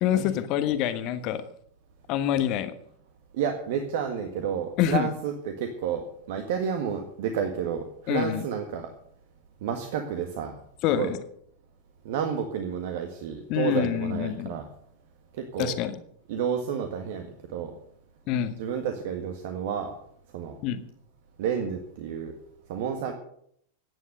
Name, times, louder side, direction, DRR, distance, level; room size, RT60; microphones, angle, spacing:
voice 1, 0.0-1.4 2.1-2.8 4.8-5.1 8.1-8.4 10.8-11.1 13.5-14.5 15.6-15.9 18.3-18.6 20.6-20.8, left 11 dB, 40° left, 11 dB, 1.3 m, -26 dB
voice 2, 3.3-8.9 9.6-10.6 10.9-11.1 12.1-14.7 15.3-15.8 16.3-17.7 18.6-20.0 20.3-20.6 21.4-22.3 22.7-23.1, right 7 dB, 50° right, 5 dB, 1.7 m, -30 dB
16.0 x 9.8 x 6.7 m, 0.68 s
figure-of-eight pair, 90°, 0 cm